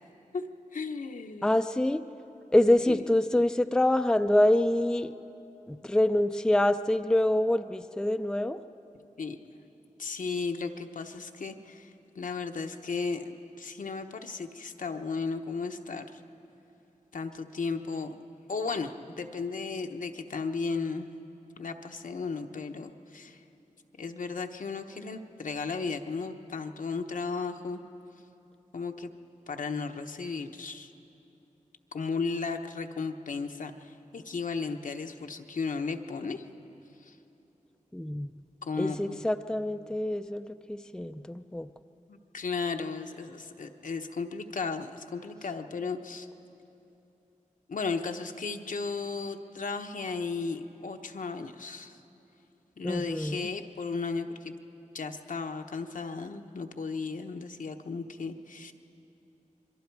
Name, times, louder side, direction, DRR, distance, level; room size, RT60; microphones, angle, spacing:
voice 1, 0.7-1.5 2.9-3.0 9.2-9.4 10.0-11.9 12.1-16.2 17.1-18.1 18.5-18.9 19.2-21.1 21.6-23.4 24.0-27.8 28.7-29.1 29.5-30.9 31.9-36.4 37.0-37.2 38.6-39.2 42.1-46.3 47.7-52.0 52.8-54.5 54.9-58.7, left 4 dB, 75° left, 5 dB, 1.0 m, -35 dB
voice 2, 1.4-2.0 2.5-5.1 5.7-8.6 37.9-38.3 38.8-41.7 52.8-53.5, left 1 dB, 5° left, 9 dB, 0.4 m, -26 dB
26.5 x 22.5 x 4.7 m, 2.9 s
wide cardioid pair, 95°, 14 cm